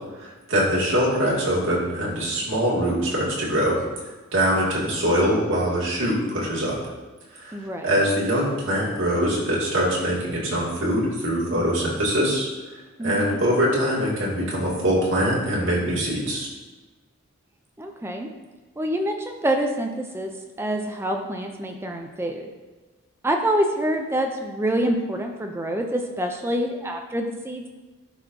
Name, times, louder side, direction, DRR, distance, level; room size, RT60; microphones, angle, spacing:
voice 1, 0.2-3.8 4.3-6.8 7.4-7.5 7.8-12.5 13.0-16.5, equal, 65° right, -6 dB, 2.2 m, -23 dB
voice 2, 7.5-7.9 13.0-13.4 17.8-18.3 18.8-20.3 20.6-22.5 23.2-27.7, right 1 dB, 10° right, 3 dB, 0.4 m, -26 dB
12.0 x 4.4 x 2.7 m, 1.2 s
head